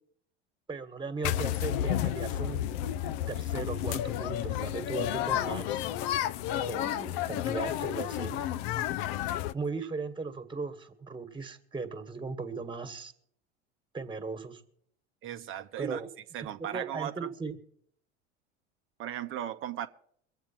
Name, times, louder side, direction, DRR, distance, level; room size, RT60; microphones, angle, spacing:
voice 1, 0.7-2.6 3.3-5.8 6.6-8.3 9.5-13.1 13.9-14.6 15.8-16.1 16.4-17.6, right 4 dB, 15° right, 1.7 m, -37 dB
sound 1, 1.2-9.5, left 11 dB, 50° left, 0.6 m, -31 dB
voice 2, 15.2-16.0 16.3-17.3 19.0-19.9, right 11 dB, 35° right, 0.8 m, -36 dB
23.5 x 8.0 x 4.5 m
figure-of-eight pair, 80°, 36 cm